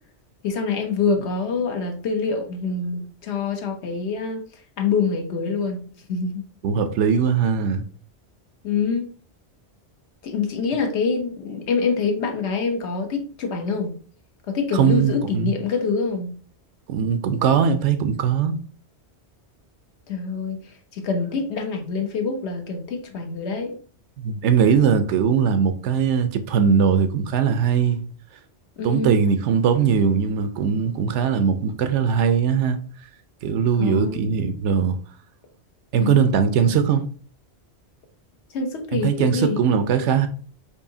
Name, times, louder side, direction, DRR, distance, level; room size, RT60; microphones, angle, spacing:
voice 1, 0.4-4.4 4.8-5.8 6.1-6.4 8.6-9.1 10.2-14.0 14.5-16.3 20.1-20.6 20.9-23.8 28.8-29.2 33.8-34.2 36.0-36.3 36.7-36.8 38.5-39.6, left 5 dB, 75° left, 1.0 m, -25 dB
voice 2, 6.6-7.8 14.7-15.5 16.9-18.5 24.2-28.0 28.8-32.8 33.4-35.0 35.9-37.0 38.9-40.3, right 7 dB, 85° right, 0.9 m, -20 dB
4.8 x 2.7 x 2.7 m
omnidirectional pair, 1.2 m